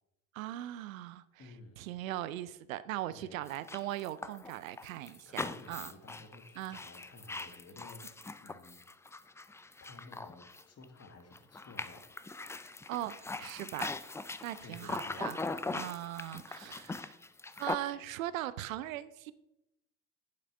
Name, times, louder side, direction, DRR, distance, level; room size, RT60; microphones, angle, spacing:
voice 1, 0.3-1.4 1.8-5.9 6.6-6.8 12.9-13.9 14.4-15.4 15.7-17.2 17.6-19.3, right 14 dB, 80° right, 16 dB, 0.5 m, -39 dB
voice 2, 1.4-1.8 3.1-3.4 5.3-8.8 9.8-12.1 14.6-15.8, left 2 dB, 40° left, 7 dB, 1.7 m, -53 dB
sound 1, 3.5-11.0 11.3-17.7, left 3 dB, 5° left, 0.3 m, -41 dB
8.8 x 7.5 x 4.8 m, 0.88 s
hypercardioid pair, 55°, 40 cm